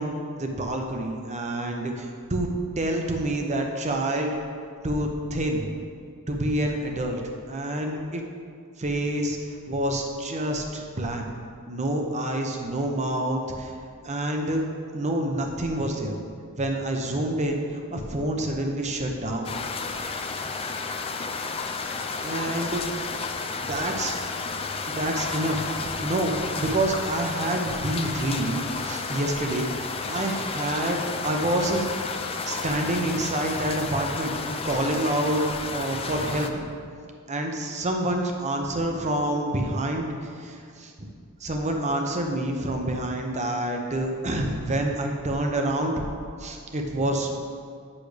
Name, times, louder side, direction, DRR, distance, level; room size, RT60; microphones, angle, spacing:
voice 1, 0.0-2.5 2.8-4.3 4.8-5.8 6.3-7.2 7.5-8.2 8.8-9.4 9.7-11.3 11.7-13.7 14.0-14.6 14.9-16.2 16.6-19.6 21.8-21.9 22.2-22.8 23.6-24.2 24.9-32.1 32.5-35.4 35.7-36.7 37.3-41.1 41.4-46.0 46.4-47.4, right 1 dB, 30° right, 2 dB, 0.8 m, -27 dB
sound 1, 19.4-36.5, left 4 dB, 25° left, 0.4 m, -32 dB
8.5 x 6.4 x 3.4 m, 2.3 s
head